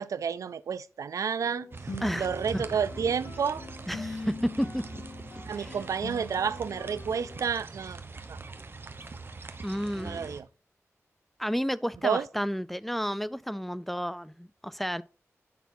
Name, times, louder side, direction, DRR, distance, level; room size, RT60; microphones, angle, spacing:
voice 1, 0.0-1.7 2.2-3.6 5.5-8.0 8.3-8.4 9.9-10.5 12.0-12.3, right 6 dB, 90° right, 0.4 m, -30 dB
sound 1, 1.4-7.4, left 2 dB, 60° left, 1.3 m, -43 dB
sound 2, 1.7-10.4, right 3 dB, 45° right, 0.9 m, -43 dB
voice 2, 3.9-5.0 5.5-5.8 9.6-10.3 11.4-15.0, equal, 5° left, 0.4 m, -31 dB
9.3 x 5.9 x 2.7 m
wide cardioid pair, 75°, 5 cm